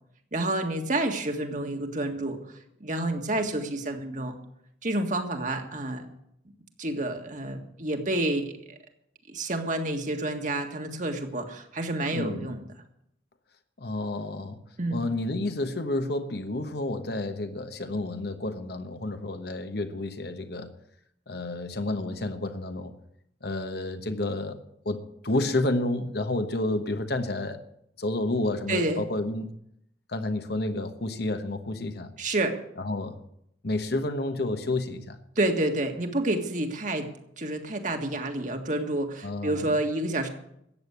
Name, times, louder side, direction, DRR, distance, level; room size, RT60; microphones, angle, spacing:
voice 1, 0.3-2.4 2.8-4.4 4.8-6.1 6.8-8.8 9.3-12.6 14.8-15.1 28.7-29.0 32.2-32.6 35.4-37.1 37.4-40.3, right 2 dB, 45° right, 1.8 m, -29 dB
voice 2, 12.1-12.5 13.8-14.6 14.9-20.7 21.3-23.0 23.4-24.6 24.8-27.6 28.0-29.5 30.1-32.1 32.8-33.2 33.6-35.2 39.2-39.8, left 2 dB, 60° left, 1.2 m, -30 dB
14.5 x 8.9 x 8.2 m
head